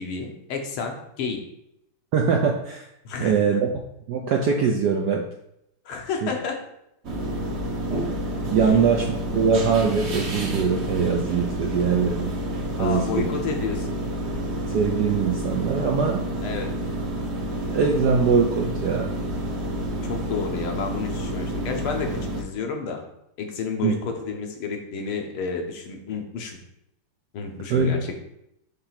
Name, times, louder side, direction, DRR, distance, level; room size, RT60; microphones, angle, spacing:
voice 1, 0.0-1.4 3.1-3.3 5.9-6.6 8.6-8.7 12.8-14.0 16.4-16.7 20.0-23.0 23.4-26.6 27.3-28.1, left 5 dB, 75° left, 3 dB, 1.8 m, -30 dB
voice 2, 2.1-2.9 3.2-3.7 4.1-5.2 6.2-6.3 8.5-9.0 9.3-12.3 12.8-13.3 14.7-16.2 17.7-19.1 23.8-23.9 27.7-27.9, right 6 dB, 75° right, 1 dB, 0.9 m, -22 dB
sound 1, 7.0-22.4, right 1 dB, 45° right, 0.9 m, -29 dB
5.9 x 3.3 x 5.7 m, 0.81 s
omnidirectional pair, 2.4 m